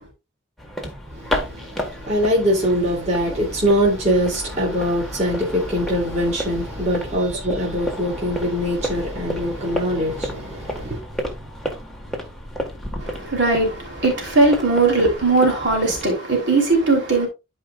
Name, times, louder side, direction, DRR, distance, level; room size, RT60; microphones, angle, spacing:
sound 1, 0.6-16.1, equal, ahead, 1.5 m, -32 dB
voice 1, 1.1-11.0, equal, 35° right, 2.9 m, -23 dB
voice 2, 13.0-17.3, right 3 dB, 60° right, 3.4 m, -19 dB
12.0 x 5.0 x 2.4 m
head